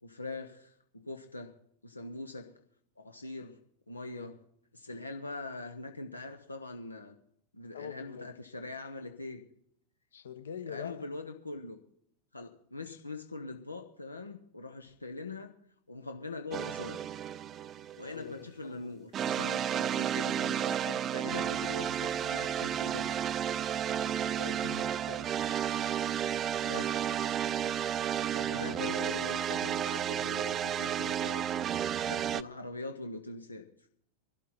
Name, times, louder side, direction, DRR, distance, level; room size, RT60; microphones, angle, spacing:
voice 1, 0.0-1.5 1.8-2.6 3.0-3.6 3.9-4.4 4.7-7.2 7.5-9.4 10.6-11.8 12.3-15.5 15.9-17.2 18.0-23.2 26.6-27.1 28.5-31.5 32.0-33.7, left 3 dB, 80° left, 5 dB, 1.1 m, -42 dB
voice 2, 7.7-8.3 10.1-11.1 12.8-13.0 18.0-19.0 24.2-25.3 28.3-28.8, left 8 dB, 65° left, 11 dB, 1.3 m, -45 dB
sound 1, 16.5-18.2 19.1-32.4, right 9 dB, 30° right, 0.5 m, -32 dB
22.0 x 12.5 x 4.4 m, 0.70 s
figure-of-eight pair, 90°, 0 cm